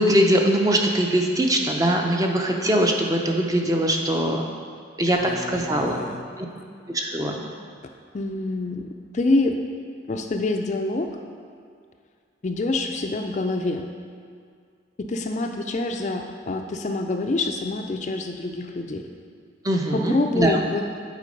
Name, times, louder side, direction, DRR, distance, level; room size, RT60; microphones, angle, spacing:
voice 1, 0.0-4.4 5.0-6.0 6.9-7.4 19.6-20.6, right 1 dB, 20° right, 1 dB, 0.5 m, -21 dB
voice 2, 5.2-6.2 8.1-8.9 9.1-9.5 10.1-11.1 12.4-13.8 15.0-19.1 19.9-20.8, left 2 dB, 40° left, 4 dB, 0.4 m, -26 dB
8.2 x 4.3 x 5.2 m, 2.1 s
head